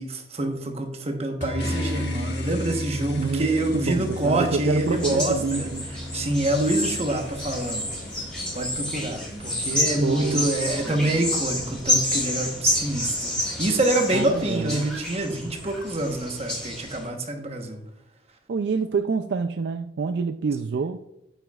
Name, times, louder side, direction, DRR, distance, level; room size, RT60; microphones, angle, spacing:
voice 1, 0.0-5.7 6.1-7.9 8.1-8.2 8.5-17.8, right 1 dB, 35° right, 5 dB, 1.1 m, -26 dB
sound 1, 1.4-11.9, left 1 dB, 40° left, 1.8 m, -36 dB
sound 2, 1.6-10.0, left 1 dB, 65° left, 1.3 m, -41 dB
voice 2, 3.2-5.8 10.0-10.5 14.1-14.9 18.5-21.0, right 5 dB, 65° right, 9 dB, 0.3 m, -27 dB
sound 3, 4.9-17.1, left 1 dB, 5° left, 2.8 m, -29 dB
9.0 x 7.8 x 2.4 m, 0.84 s
head